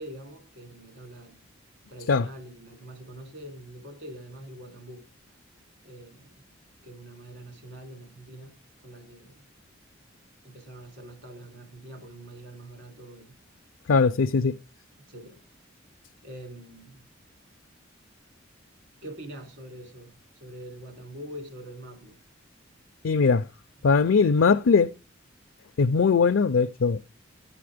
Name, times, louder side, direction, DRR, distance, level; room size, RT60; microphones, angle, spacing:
voice 1, 0.0-1.4 1.9-5.1 5.8-6.4 6.8-9.4 10.4-13.4 14.3-14.4 15.0-15.4 16.2-17.1 19.0-22.2 23.8-23.9, right 1 dB, 60° right, 3.9 m, -44 dB
voice 2, 13.9-14.6 23.0-23.5 23.8-24.9 25.8-27.0, left 5 dB, 75° left, 0.5 m, -20 dB
12.0 x 8.6 x 5.0 m
head